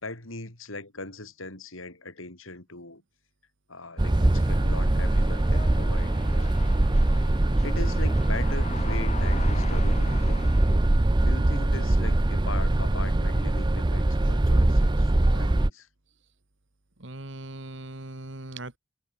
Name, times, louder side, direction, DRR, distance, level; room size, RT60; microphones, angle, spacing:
voice 1, 0.0-3.0 3.7-6.5 7.6-10.5 11.2-15.9, left 2 dB, 75° left, 5.7 m, -40 dB
sound 1, 4.0-15.7, right 1 dB, 20° right, 0.6 m, -22 dB
sound 2, 4.1-10.9, left 4 dB, 35° left, 6.6 m, -42 dB
voice 2, 17.0-18.8, right 2 dB, 60° right, 2.1 m, -39 dB
head